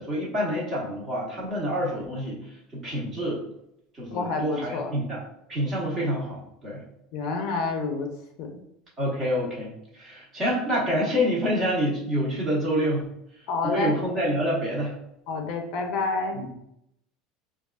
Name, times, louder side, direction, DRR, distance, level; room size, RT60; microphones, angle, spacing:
voice 1, 0.0-2.4 2.7-3.4 3.9-5.2 5.5-6.8 9.0-13.0 13.6-14.9 16.3-16.5, equal, 20° right, -4 dB, 1.0 m, -27 dB
voice 2, 4.1-4.9 7.1-8.1 8.4-8.6 13.5-13.9 15.3-16.4, left 4 dB, 50° left, 3 dB, 0.5 m, -28 dB
4.7 x 2.3 x 2.3 m, 0.79 s
cardioid pair, 165°, 0 cm